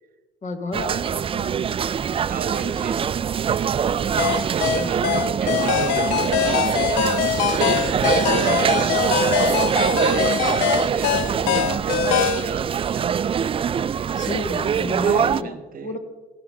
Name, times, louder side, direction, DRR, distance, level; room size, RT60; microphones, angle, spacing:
voice 1, 0.4-1.6 4.8-5.3 7.7-8.9 14.2-16.0, left 2 dB, 40° left, 8 dB, 1.8 m, -32 dB
sound 1, 0.7-15.4, right 8 dB, 30° right, 0.4 m, -23 dB
voice 2, 2.2-10.4 10.7-14.4 15.0-16.0, right 6 dB, 45° right, 10 dB, 1.1 m, -36 dB
First song i made years back., 4.2-12.5, left 10 dB, 80° left, 0.7 m, -23 dB
sound 2, 7.5-11.0, left 2 dB, 60° left, 4.2 m, -41 dB
18.5 x 11.5 x 3.8 m, 1.3 s
supercardioid pair, 70°, 19 cm